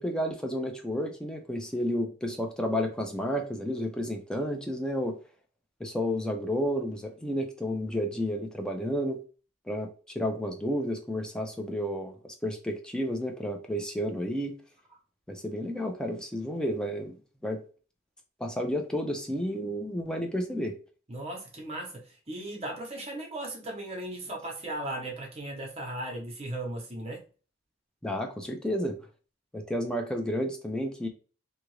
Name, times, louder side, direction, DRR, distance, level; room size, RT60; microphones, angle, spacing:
voice 1, 0.0-5.2 5.8-9.2 9.7-14.6 15.3-17.2 17.4-17.6 18.4-20.7 28.0-29.0 29.5-31.1, equal, 5° left, 3 dB, 0.4 m, -31 dB
voice 2, 21.1-27.2, right 1 dB, 30° right, 1 dB, 0.8 m, -37 dB
2.7 x 2.4 x 3.1 m, 0.37 s
head